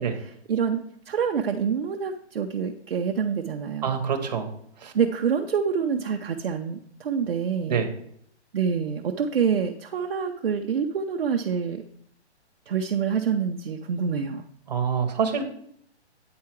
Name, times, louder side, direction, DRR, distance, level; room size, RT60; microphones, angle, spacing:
voice 1, 0.0-4.0 4.9-7.8 8.5-11.8 12.7-14.4, right 6 dB, 55° right, 3 dB, 0.6 m, -27 dB
voice 2, 3.8-4.5 4.8-4.9 7.7-7.9 14.7-15.4, right 7 dB, 35° right, 5 dB, 1.0 m, -25 dB
8.5 x 4.7 x 4.5 m, 0.69 s
hypercardioid pair, 170°, 34 cm